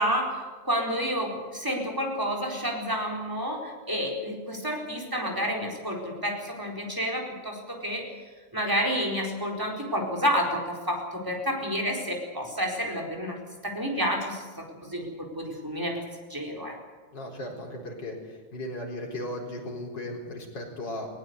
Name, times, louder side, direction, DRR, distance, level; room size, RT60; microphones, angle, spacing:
voice 1, 0.0-8.1 8.5-13.4 13.6-16.0 16.3-16.7, equal, 10° right, 0 dB, 4.3 m, -30 dB
voice 2, 17.1-21.1, left 1 dB, 65° left, -1 dB, 5.1 m, -36 dB
20.0 x 18.5 x 8.1 m, 1.4 s
omnidirectional pair, 2.1 m